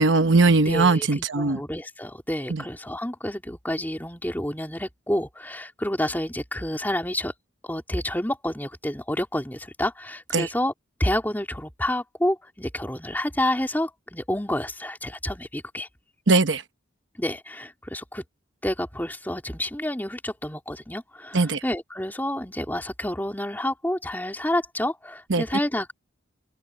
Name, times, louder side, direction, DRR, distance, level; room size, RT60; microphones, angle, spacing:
voice 1, 0.0-1.6 2.5-2.6 10.3-10.5 16.3-16.6 21.3-21.6 25.3-25.4, right 3 dB, 65° right, 0.9 m, -20 dB
voice 2, 0.6-7.3 7.6-10.7 11.0-15.9 17.2-18.2 18.6-25.9, left 1 dB, 10° left, 3.0 m, -29 dB
head